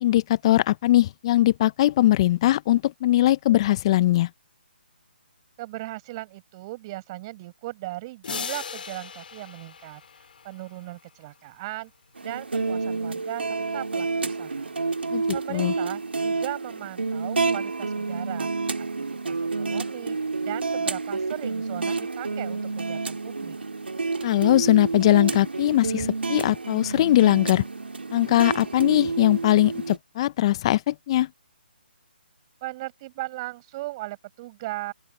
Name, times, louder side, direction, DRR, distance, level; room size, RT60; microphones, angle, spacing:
voice 1, 0.0-4.3 15.1-15.2 15.5-15.7 24.2-27.6 28.1-31.3, left 14 dB, 30° left, 0.6 m, -20 dB
voice 2, 5.6-10.0 10.4-11.9 12.2-14.8 15.3-18.9 19.2-23.6 32.6-34.9, right 19 dB, 30° right, 7.9 m, -37 dB
sound 1, 8.2-11.0, left 6 dB, 60° left, 2.7 m, -38 dB
sound 2, 12.2-30.0, right 4 dB, 80° right, 2.1 m, -29 dB
open air
figure-of-eight pair, 145°, 6 cm